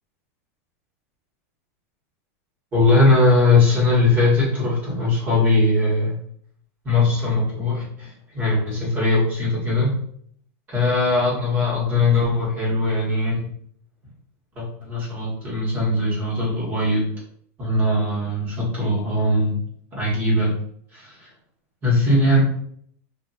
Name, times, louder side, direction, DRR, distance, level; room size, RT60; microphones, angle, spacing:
voice 1, 2.7-6.2 6.8-10.0 10.7-13.4 14.6-17.1 17.6-19.5 19.9-20.5 20.9-21.3 21.8-22.4, left 2 dB, 20° right, -6 dB, 1.4 m, -20 dB
3.0 x 2.6 x 2.8 m, 0.63 s
supercardioid pair, 165°, 8 cm